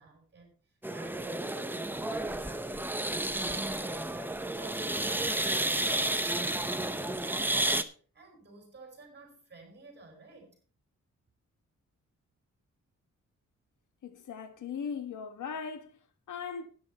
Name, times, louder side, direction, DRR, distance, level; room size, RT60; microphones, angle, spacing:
voice 1, 0.0-10.6, right 3 dB, 35° right, 6.3 m, -53 dB
sound 1, 0.8-7.8, right 1 dB, 5° right, 0.7 m, -31 dB
voice 2, 14.0-15.9 16.3-16.7, left 6 dB, 85° left, 1.5 m, -38 dB
12.5 x 9.8 x 4.3 m
wide cardioid pair, 135°, 30 cm